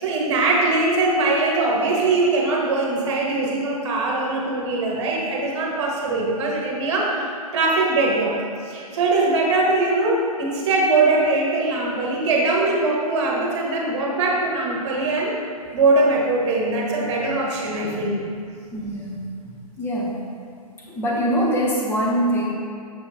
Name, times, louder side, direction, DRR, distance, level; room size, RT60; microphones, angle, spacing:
voice 1, 0.0-7.2 7.5-8.4 8.7-15.3 15.7-18.3 18.9-19.0, right 2 dB, 45° right, -2 dB, 1.4 m, -21 dB
voice 2, 18.7-19.3 19.8-20.1 20.9-22.5, equal, 10° left, -4 dB, 0.9 m, -23 dB
6.6 x 5.8 x 2.7 m, 2.4 s
figure-of-eight pair, 125°, 20 cm